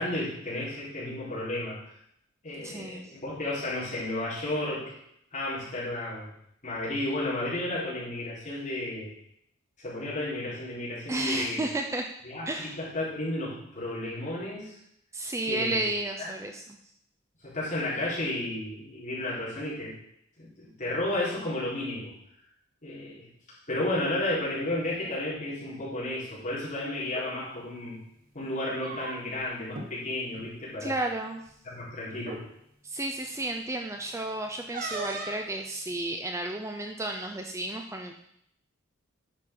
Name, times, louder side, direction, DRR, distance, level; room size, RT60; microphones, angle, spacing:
voice 1, 0.0-1.8 2.4-4.9 5.3-6.3 6.6-9.1 9.8-11.7 12.2-14.7 15.5-15.9 16.2-16.3 17.4-19.9 20.4-22.1 22.8-23.3 23.7-28.0 28.3-30.9 31.6-32.4, left 1 dB, 40° left, -8 dB, 3.9 m, -32 dB
voice 2, 2.6-3.0 11.1-12.1 12.5-12.8 15.1-16.8 30.8-31.4 32.8-38.2, right 2 dB, 15° right, 4 dB, 0.5 m, -32 dB
sound 1, 27.0-27.3 28.5-29.4 29.7-29.9 30.3-30.5 31.5-31.6 32.2-32.4 34.7-35.5, right 3 dB, 45° right, 1.2 m, -37 dB
10.0 x 6.0 x 3.8 m, 0.74 s
head